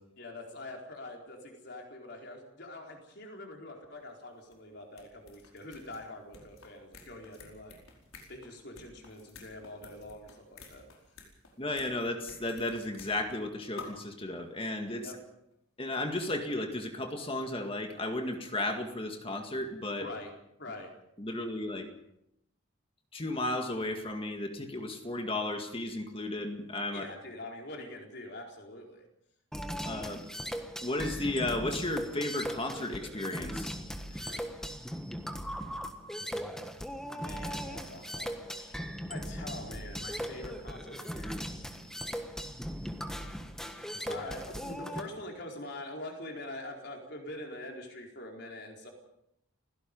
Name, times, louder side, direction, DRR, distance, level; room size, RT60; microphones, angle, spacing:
voice 1, 0.2-7.7 8.3-10.9 15.0-15.2 20.0-20.3 20.6-20.9 26.9-29.0 34.1-34.4 37.1-41.7 44.1-48.9, left 1 dB, 50° left, 1 dB, 4.4 m, -44 dB
sound 1, 4.0-4.1 4.4-13.5 13.8-14.1 14.8-14.9 15.1-15.2 16.5-16.6 17.6-19.0 19.3-19.4, left 4 dB, 80° left, 4.8 m, -52 dB
voice 2, 11.6-15.1 15.8-20.1 21.2-21.9 23.1-27.0 29.8-30.2 30.8-33.8, left 2 dB, 25° left, 5 dB, 2.0 m, -34 dB
sound 2, 29.5-45.0, equal, 5° left, 1.4 m, -38 dB
29.5 x 16.5 x 5.4 m, 0.78 s
head